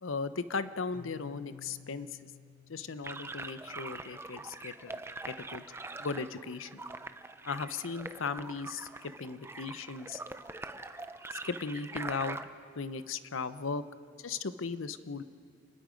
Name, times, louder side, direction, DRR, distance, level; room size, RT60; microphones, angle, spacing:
voice 1, 0.0-2.3 2.7-5.0 5.2-5.6 6.0-6.8 7.4-10.2 11.4-12.4 12.7-13.8 14.2-15.2, left 4 dB, 90° left, 13 dB, 0.8 m, -37 dB
Keyboard (musical), 0.9-4.6, left 7 dB, 45° left, 0.9 m, -55 dB
sound 1, 3.0-12.4, right 3 dB, 15° right, 0.5 m, -43 dB
29.0 x 20.0 x 5.2 m, 2.3 s
head